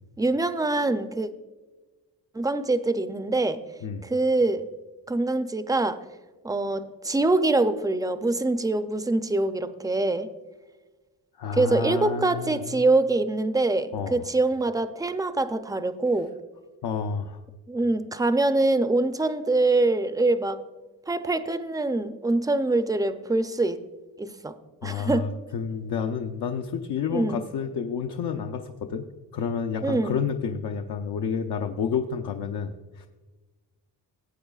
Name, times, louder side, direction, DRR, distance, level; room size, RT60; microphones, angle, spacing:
voice 1, 0.2-1.3 2.3-3.6 4.0-4.6 5.1-6.0 6.4-10.3 11.5-16.3 17.7-20.6 21.1-23.8 24.2-24.6 24.8-25.3 27.1-27.4 29.8-30.2, right 2 dB, 10° right, 10 dB, 0.4 m, -24 dB
voice 2, 11.4-12.6 13.9-14.3 16.8-17.4 24.8-29.1 29.3-32.7 33.0-33.1, left 6 dB, 70° left, 3 dB, 0.7 m, -30 dB
17.5 x 8.7 x 2.3 m, 1.2 s
wide cardioid pair, 155°, 40 cm